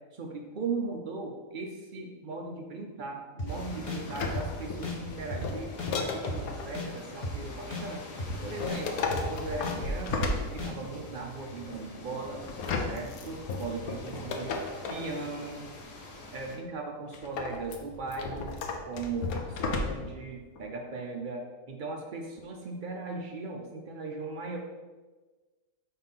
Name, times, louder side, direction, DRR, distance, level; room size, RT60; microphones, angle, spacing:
voice 1, 0.1-8.2 8.4-12.4 12.9-14.6 14.9-15.6 16.3-18.5 18.9-24.6, right 3 dB, 85° right, 1 dB, 0.4 m, -38 dB
sound 1, 3.4-3.5 3.9-4.0 4.3-4.5 4.8-5.0 5.3-5.4 5.8-5.9 6.3-6.4 6.7-6.9 7.2-7.4 7.7-7.8 8.2-8.3 8.7-8.8 9.1-9.3 9.6-9.8 10.1-10.2 10.6-10.7, left 1 dB, 40° left, 0.5 m, -34 dB
sound 2, 3.5-16.6, left 2 dB, 90° left, 1.8 m, -45 dB
sound 3, 4.1-6.7 8.3-11.0 12.4-15.1 17.1-20.2 20.6-20.7, left 3 dB, 70° left, 1.1 m, -34 dB
4.4 x 4.1 x 5.5 m, 1.3 s
omnidirectional pair, 1.7 m